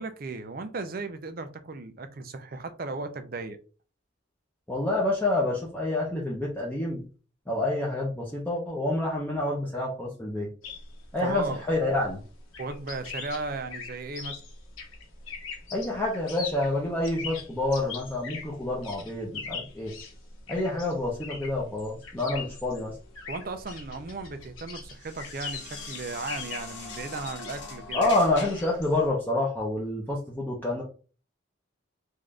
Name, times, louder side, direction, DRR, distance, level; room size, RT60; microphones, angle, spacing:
voice 1, 0.0-3.6 11.2-11.6 12.6-14.4 23.3-28.1, right 3 dB, 45° right, 9 dB, 0.5 m, -36 dB
voice 2, 4.7-7.0 7.5-10.5 11.1-12.2 15.7-19.9 20.5-22.9 27.9-30.8, left 2 dB, 10° left, -4 dB, 0.7 m, -28 dB
sound 1, 10.6-29.1, left 5 dB, 90° left, 1.0 m, -41 dB
sound 2, 23.0-28.8, left 3 dB, 65° left, 1.4 m, -44 dB
3.7 x 2.6 x 3.3 m, 0.37 s
head